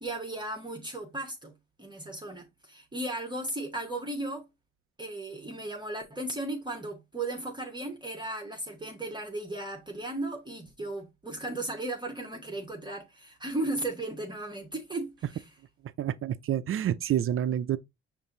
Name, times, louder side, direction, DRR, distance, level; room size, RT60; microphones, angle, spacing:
voice 1, 0.0-1.5 1.8-4.5 5.0-15.4, right 2 dB, 15° right, 1.0 m, -36 dB
voice 2, 16.0-17.8, right 10 dB, 45° right, 0.5 m, -28 dB
5.3 x 2.6 x 3.7 m
cardioid pair, 90°, 30 cm